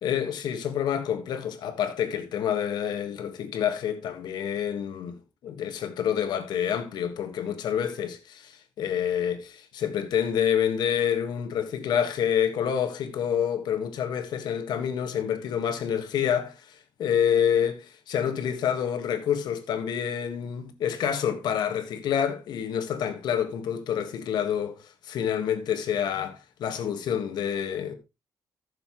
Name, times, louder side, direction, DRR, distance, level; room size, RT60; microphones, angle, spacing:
voice 1, 0.0-27.9, left 8 dB, 90° left, 1.6 m, -28 dB
14.5 x 6.8 x 3.1 m
cardioid pair, 135°, 7 cm